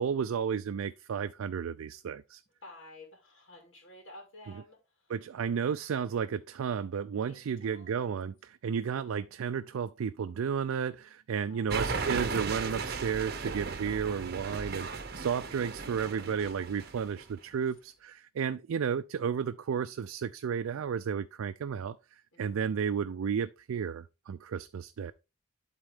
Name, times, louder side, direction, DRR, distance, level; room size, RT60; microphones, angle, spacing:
voice 1, 0.0-2.4 5.1-14.9 15.1-25.1, right 7 dB, 85° right, 0.4 m, -33 dB
voice 2, 2.6-5.2 7.3-8.0 11.5-12.1 16.3-17.6 22.3-23.0, left 2 dB, 65° left, 2.5 m, -54 dB
sound 1, 11.7-17.2, right 4 dB, 50° right, 0.8 m, -36 dB
11.5 x 3.8 x 3.6 m
head